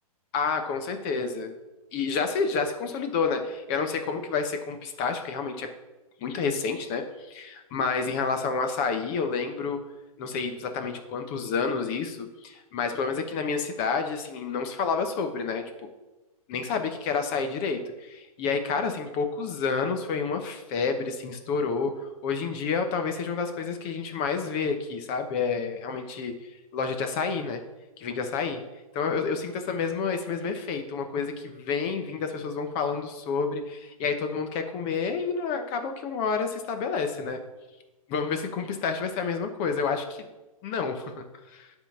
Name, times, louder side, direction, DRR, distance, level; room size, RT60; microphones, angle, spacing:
voice 1, 0.3-1.5 1.9-5.7 6.2-9.8 10.2-15.6 16.5-21.9 22.2-26.3 26.7-27.6 28.0-28.6 28.9-37.4 38.1-40.3 40.6-41.1 41.5-41.7, left 5 dB, 30° left, 7 dB, 0.9 m, -29 dB
9.8 x 3.9 x 7.2 m, 1.1 s
hypercardioid pair, 150°, 19 cm